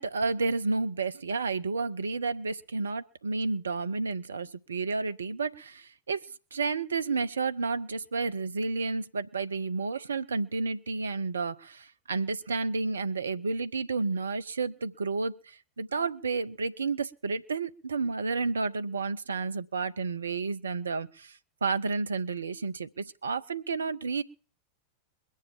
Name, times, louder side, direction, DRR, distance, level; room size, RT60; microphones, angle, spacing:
voice 1, 0.0-6.2 6.5-24.2, right 4 dB, 70° right, 0.6 m, -31 dB
22.0 x 7.3 x 7.3 m
figure-of-eight pair, 90°, 0 cm